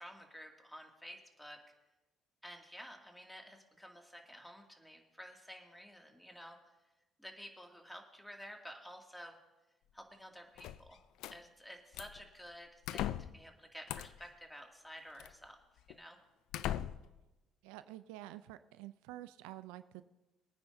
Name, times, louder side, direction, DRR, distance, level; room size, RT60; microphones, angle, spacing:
voice 1, 0.0-1.6 2.4-6.6 7.2-9.4 9.9-11.0 11.3-15.6 15.9-16.2, equal, 5° left, 2 dB, 2.4 m, -52 dB
sound 1, 10.6-11.4 11.9-12.3 12.9-13.4 13.9-14.3 15.2-15.3 15.9-16.0 16.5-17.2, left 12 dB, 70° left, 0.4 m, -39 dB
voice 2, 17.6-20.0, right 15 dB, 80° right, 13 dB, 0.4 m, -49 dB
22.5 x 9.5 x 2.7 m, 1.1 s
hypercardioid pair, 55°, 0 cm